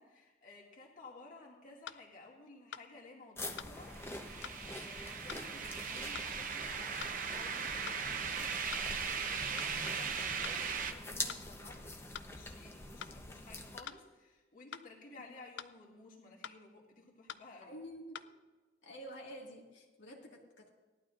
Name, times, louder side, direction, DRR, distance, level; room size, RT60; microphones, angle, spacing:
voice 1, 0.0-17.8, left 3 dB, 45° left, -3 dB, 2.2 m, -55 dB
sound 1, 1.1-1.2 1.9-2.0 2.7-2.9 3.6-3.8 4.4-4.6 5.3-5.5 6.2-6.3 7.0-7.2 7.9-8.0 8.7-8.9 9.6-9.8 10.4-10.6 11.3-11.5 12.1-12.3 13.0-13.2 13.9-14.0 14.7-14.9 15.6-15.8 16.4-16.6 17.3-17.5 18.2-18.3, left 8 dB, 70° left, 0.4 m, -46 dB
sound 2, 3.4-13.8, left 2 dB, 15° left, 0.7 m, -45 dB
sound 3, 3.8-10.9, right 6 dB, 45° right, 0.8 m, -38 dB
voice 2, 17.6-18.3 18.8-20.7, equal, 90° left, -2 dB, 1.9 m, -49 dB
18.0 x 11.5 x 2.5 m, 1.2 s
head